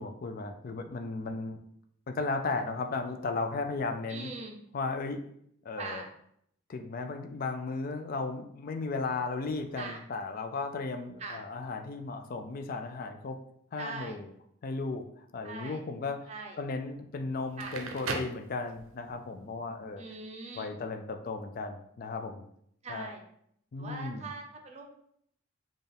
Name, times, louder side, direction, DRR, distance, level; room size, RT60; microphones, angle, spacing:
voice 1, 0.0-1.6 2.1-4.3 4.7-5.2 5.6-6.0 6.7-13.4 13.7-14.3 14.6-15.1 15.3-16.3 16.6-20.0 20.6-22.4 22.9-23.1 23.7-24.3, left 3 dB, 45° left, 7 dB, 0.4 m, -35 dB
voice 2, 4.1-4.6 5.8-6.1 9.8-10.0 11.2-11.4 13.8-14.2 15.4-15.8 16.3-16.6 17.6-17.8 20.0-20.7 22.8-23.2 23.8-24.9, right 3 dB, 30° right, 2 dB, 0.6 m, -41 dB
Crackle, 17.4-19.1, right 3 dB, 85° right, 0.6 m, -37 dB
4.3 x 2.4 x 3.4 m, 0.69 s
head